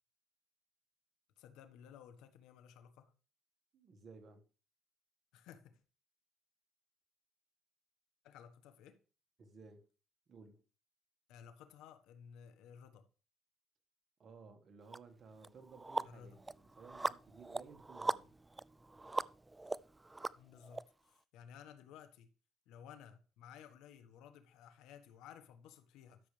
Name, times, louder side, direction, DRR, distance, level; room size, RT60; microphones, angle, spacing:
voice 1, 1.4-3.1 5.3-5.8 8.2-9.0 11.3-13.1 16.0-16.4 20.3-22.3 22.7-26.3, left 8 dB, 80° left, 1.3 m, -56 dB
voice 2, 3.7-4.5 9.4-9.9 10.3-10.6 14.2-18.3, right 4 dB, 40° right, 1.7 m, -57 dB
sound 1, 14.9-15.0 15.4-20.8, right 2 dB, 15° right, 0.3 m, -40 dB
12.5 x 6.6 x 3.3 m
cardioid pair, 110°, 0 cm